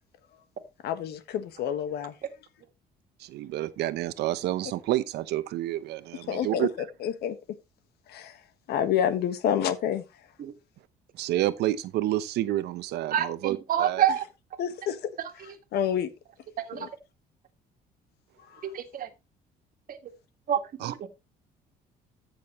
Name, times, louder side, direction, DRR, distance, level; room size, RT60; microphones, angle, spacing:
voice 1, 0.8-2.1 6.3-6.7 7.0-7.4 8.1-8.4 8.7-10.0 14.6-15.1 15.7-16.1 16.8-16.9 18.5-18.6, left 9 dB, 75° left, 1.5 m, -28 dB
voice 2, 3.2-6.7 11.1-14.0 20.8-20.9, right 14 dB, 75° right, 0.9 m, -29 dB
voice 3, 13.1-14.2 15.2-15.3 16.6-16.9 18.6-19.1 19.9-20.1 20.5-20.6 21.0-21.1, right 10 dB, 55° right, 1.8 m, -27 dB
14.0 x 6.5 x 3.1 m
cardioid pair, 110°, 17 cm